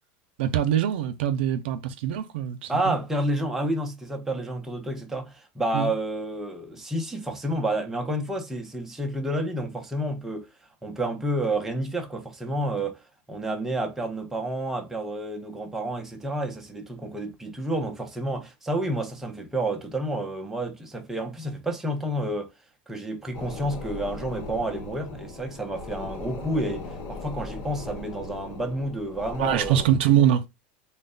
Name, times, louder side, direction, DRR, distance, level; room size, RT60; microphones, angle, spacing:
voice 1, 0.4-3.0 5.7-5.9 29.4-30.4, right 10 dB, 85° right, 0.6 m, -23 dB
voice 2, 2.7-10.5 10.8-13.0 13.3-22.5 22.9-29.8, right 1 dB, 5° right, 0.6 m, -30 dB
sound 1, 23.3-29.9, left 3 dB, 55° left, 1.1 m, -38 dB
3.2 x 2.2 x 3.8 m
supercardioid pair, 145°, 6 cm